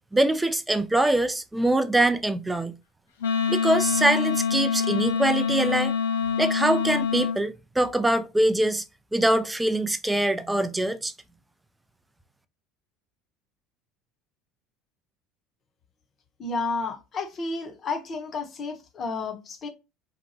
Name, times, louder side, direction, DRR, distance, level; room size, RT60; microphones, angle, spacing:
voice 1, 0.1-2.8 3.5-5.9 6.4-8.8 9.1-11.1, right 1 dB, 10° right, 0.4 m, -23 dB
Wind instrument woodwind instrument, 3.2-7.4, left 6 dB, 85° left, 0.5 m, -25 dB
voice 2, 16.4-19.7, left 3 dB, 40° left, 0.7 m, -31 dB
2.8 x 2.2 x 2.6 m
hypercardioid pair, 70°, 0 cm